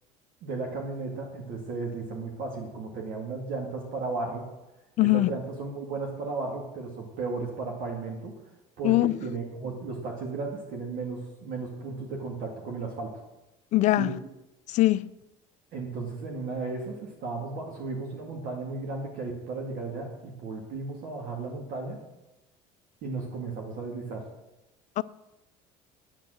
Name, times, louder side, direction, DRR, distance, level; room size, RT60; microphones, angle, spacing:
voice 1, 0.4-4.4 5.0-8.3 8.8-13.1 14.0-14.1 15.7-22.0 23.0-24.2, right 3 dB, 65° right, 2.1 m, -35 dB
voice 2, 5.0-5.3 8.8-9.1 13.7-14.1 14.7-15.1 25.0-25.1, left 17 dB, 55° left, 0.4 m, -21 dB
9.2 x 8.9 x 6.3 m
supercardioid pair, 105°, 15 cm